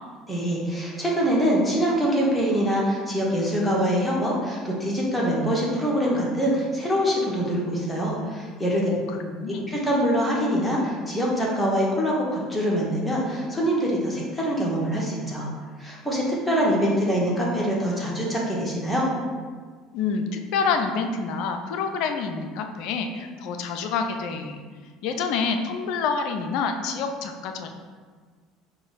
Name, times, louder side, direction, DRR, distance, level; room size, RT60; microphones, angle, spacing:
voice 1, 0.3-8.9 9.5-15.5 15.8-19.1, equal, 5° left, -5 dB, 1.2 m, -24 dB
voice 2, 8.9-9.8 19.9-24.6 25.0-27.7, left 5 dB, 55° left, 5 dB, 0.4 m, -27 dB
4.7 x 2.2 x 4.0 m, 1.6 s
figure-of-eight pair, 65°, 0 cm